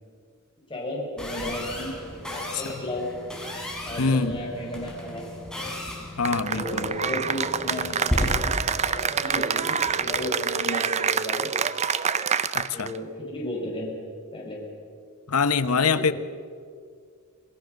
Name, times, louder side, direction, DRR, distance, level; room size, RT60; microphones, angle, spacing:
voice 1, 0.7-3.1 3.8-5.2 6.5-11.5 12.7-14.0 14.3-14.6 15.6-16.1, left 1 dB, 25° left, -2 dB, 5.2 m, -34 dB
sound 1, 1.2-10.3, left 1 dB, 5° left, 4.1 m, -34 dB
voice 2, 4.0-4.4 6.2-6.9 12.5-12.9 15.3-16.1, left 5 dB, 75° left, 13 dB, 0.9 m, -24 dB
Cheering / Applause, 6.3-13.0, right 6 dB, 30° right, 0.6 m, -26 dB
27.0 x 18.5 x 6.5 m, 2.1 s
head